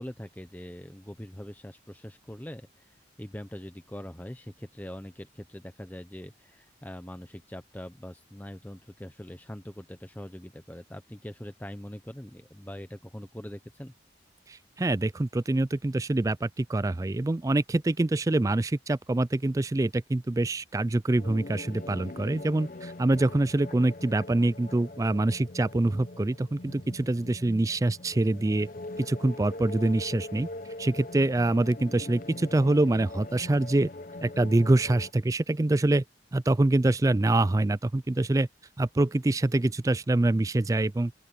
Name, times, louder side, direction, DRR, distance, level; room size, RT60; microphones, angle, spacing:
voice 1, 0.0-13.9, equal, 10° left, 0.9 m, -42 dB
voice 2, 14.5-28.7 29.0-30.5 30.8-33.9 34.2-36.0 36.3-38.5 38.8-41.1, right 2 dB, 20° right, 0.3 m, -25 dB
sound 1, 21.2-35.1, left 2 dB, 45° left, 0.7 m, -42 dB
open air
head